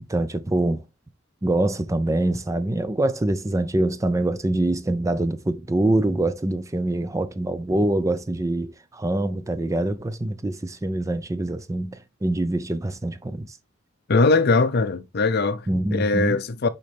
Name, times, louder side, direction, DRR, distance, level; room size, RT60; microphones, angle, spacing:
voice 1, 0.1-0.8 1.4-13.6 15.7-16.4, right 1 dB, 15° right, 0.4 m, -24 dB
voice 2, 14.1-16.7, left 3 dB, 50° left, 0.6 m, -21 dB
6.6 x 4.2 x 3.4 m
head